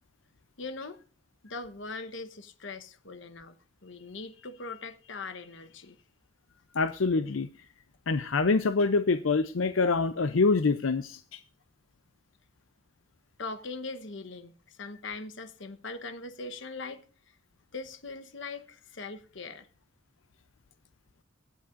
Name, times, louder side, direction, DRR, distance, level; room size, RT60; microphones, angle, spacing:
voice 1, 0.6-1.0 1.4-3.6 3.8-6.0 13.4-17.0 17.7-19.7, left 3 dB, 70° left, 1.1 m, -41 dB
voice 2, 6.7-7.5 8.1-11.4, left 4 dB, 85° left, 0.6 m, -25 dB
24.5 x 8.2 x 2.6 m
head